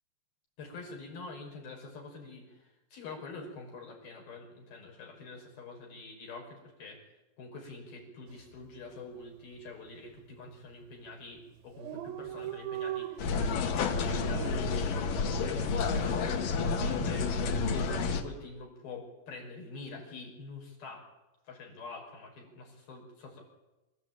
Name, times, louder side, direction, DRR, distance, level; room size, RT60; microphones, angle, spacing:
voice 1, 0.6-17.3 17.7-21.0 21.4-23.5, left 3 dB, 90° left, -1 dB, 7.5 m, -46 dB
Dog, 8.3-8.6 8.9-9.0 9.2-9.9 10.5-10.7 11.1-11.2 11.3-11.4 11.6-14.5, right 11 dB, 85° right, 3.0 m, -40 dB
sound 1, 13.2-18.2, left 4 dB, 70° left, 3.3 m, -30 dB
27.5 x 15.0 x 9.0 m, 1.1 s
omnidirectional pair, 4.1 m